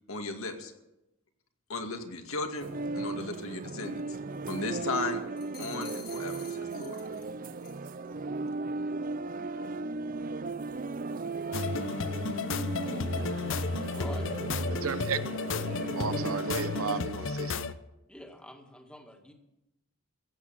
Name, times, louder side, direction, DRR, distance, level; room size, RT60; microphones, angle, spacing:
voice 1, 0.1-0.7 1.7-4.0 4.4-5.2 5.6-7.0, left 3 dB, 80° left, 2.2 m, -36 dB
sound 1, 2.6-17.0, right 3 dB, 40° right, 0.5 m, -36 dB
sound 2, 5.4-7.3 7.6-7.9, left 9 dB, 45° left, 1.9 m, -49 dB
sound 3, 11.5-17.7, left 4 dB, 65° left, 0.7 m, -33 dB
voice 2, 13.9-14.3 18.1-19.3, equal, 5° left, 1.8 m, -45 dB
voice 3, 14.8-15.2 16.0-17.7, right 6 dB, 85° right, 1.0 m, -33 dB
16.0 x 8.6 x 8.7 m
head